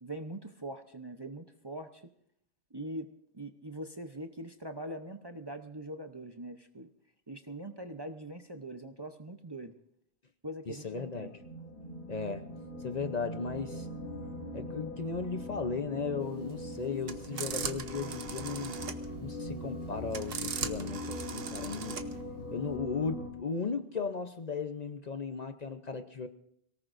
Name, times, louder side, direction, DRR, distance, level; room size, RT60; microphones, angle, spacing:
voice 1, 0.0-2.0 2.7-3.1 3.3-6.9 7.3-9.7 10.4-11.3, right 1 dB, 25° right, 6 dB, 0.7 m, -42 dB
voice 2, 10.7-11.4 12.1-12.4 12.8-13.9 14.5-18.8 19.2-22.0 22.5-26.3, left 5 dB, 40° left, 8 dB, 0.8 m, -36 dB
sound 1, 10.8-23.3, left 1 dB, 75° left, 4.0 m, -41 dB
sound 2, 16.3-22.2, right 6 dB, 60° right, 1.1 m, -40 dB
23.5 x 18.0 x 2.6 m, 0.72 s
omnidirectional pair, 1.1 m